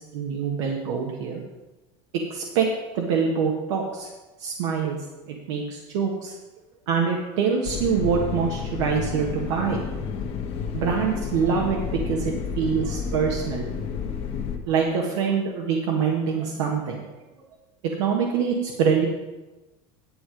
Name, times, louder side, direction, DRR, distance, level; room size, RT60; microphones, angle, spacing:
voice 1, 0.0-1.4 2.3-2.7 2.9-4.1 4.4-6.3 6.9-9.9 10.7-13.7 14.7-17.0 17.8-19.1, right 6 dB, 85° right, -1 dB, 1.6 m, -25 dB
sound 1, 7.6-14.6, left 6 dB, 40° left, 1.2 m, -31 dB
10.5 x 7.7 x 5.1 m, 1.1 s
supercardioid pair, 145°, 15 cm